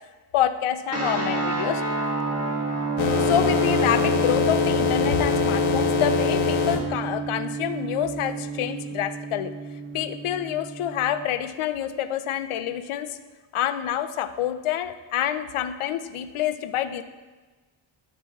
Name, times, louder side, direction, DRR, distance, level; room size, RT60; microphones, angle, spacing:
voice 1, 0.3-1.8 3.2-9.5 9.9-13.2 13.5-17.0, left 10 dB, 90° left, 10 dB, 0.7 m, -27 dB
sound 1, 0.9-11.2, right 4 dB, 30° right, 1.6 m, -29 dB
sound 2, 3.0-6.8, left 6 dB, 70° left, 1.0 m, -23 dB
13.0 x 9.5 x 2.4 m, 1.3 s
wide cardioid pair, 105°, 49 cm